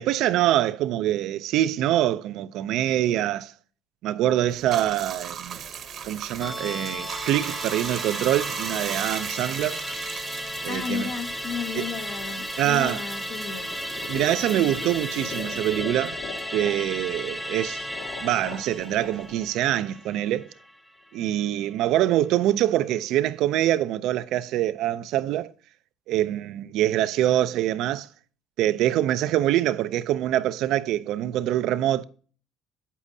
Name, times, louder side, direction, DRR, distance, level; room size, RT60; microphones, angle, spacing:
voice 1, 0.0-3.5 4.0-5.6 6.0-9.8 10.6-11.1 11.7-11.8 12.6-13.0 14.1-16.2 16.5-17.8 18.2-20.5 21.1-25.5 26.1-28.1 28.6-32.0, right 13 dB, 65° right, 0.4 m, -24 dB
Bathtub (filling or washing), 4.5-17.3 17.6-19.5, right 8 dB, 45° right, 0.9 m, -38 dB
Musical instrument, 6.4-21.1 21.4-21.5, equal, 5° left, 0.7 m, -35 dB
voice 2, 10.7-13.7, left 8 dB, 55° left, 0.7 m, -33 dB
sound 1, 13.7-20.6, left 5 dB, 80° left, 2.1 m, -41 dB
8.3 x 8.2 x 2.7 m
cardioid pair, 125°, 0 cm